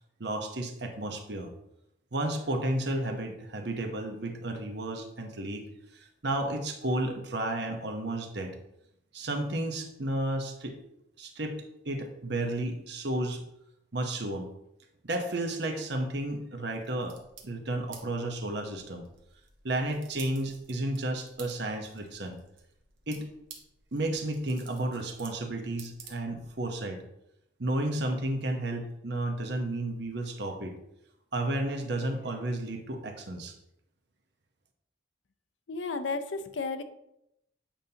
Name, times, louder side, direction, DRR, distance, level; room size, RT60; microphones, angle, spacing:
voice 1, 0.2-1.5 2.1-5.6 5.9-8.6 9.1-10.8 11.2-13.4 13.9-14.5 15.0-17.2 17.4-19.0 19.6-22.4 23.1-23.3 23.9-27.0 27.6-30.8 31.3-33.6, right 1 dB, 60° right, 4 dB, 0.9 m, -32 dB
sound 1, 16.7-26.6, right 6 dB, 80° right, 1.2 m, -53 dB
voice 2, 35.7-36.8, left 4 dB, 75° left, 9 dB, 0.6 m, -33 dB
8.7 x 5.4 x 2.8 m, 0.83 s
head